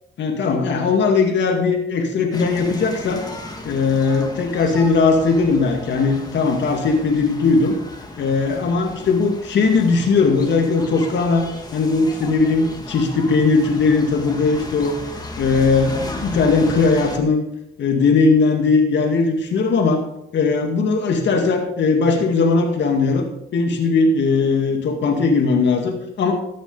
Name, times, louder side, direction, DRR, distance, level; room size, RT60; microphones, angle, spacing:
voice 1, 0.2-3.2 3.6-7.8 8.2-11.5 11.7-15.0 15.4-17.4 17.8-20.0 20.3-23.2 23.5-26.3, left 4 dB, 65° left, 3 dB, 2.1 m, -18 dB
sound 1, 2.3-17.2, left 2 dB, 20° left, 2.1 m, -35 dB
14.0 x 8.9 x 4.0 m, 0.83 s
cardioid pair, 90°, 20 cm